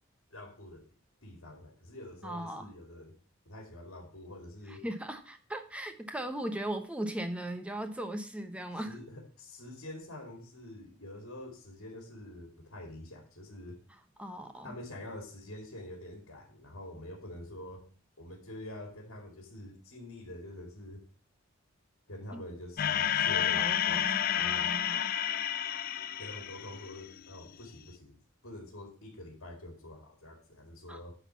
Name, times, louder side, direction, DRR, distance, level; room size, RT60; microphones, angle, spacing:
voice 1, 0.3-0.8 1.2-3.1 3.5-4.8 8.8-13.8 14.6-17.8 18.2-21.0 22.1-24.7 26.2-28.2 28.4-31.1, left 1 dB, 80° left, 1 dB, 2.4 m, -46 dB
voice 2, 2.2-2.7 4.7-9.0 14.2-14.7 22.3-22.4 23.6-25.1 30.9-31.0, right 1 dB, 5° right, 7 dB, 0.9 m, -38 dB
sound 1, 22.8-27.2, left 10 dB, 45° left, 0.4 m, -30 dB
10.5 x 4.1 x 7.0 m, 0.41 s
head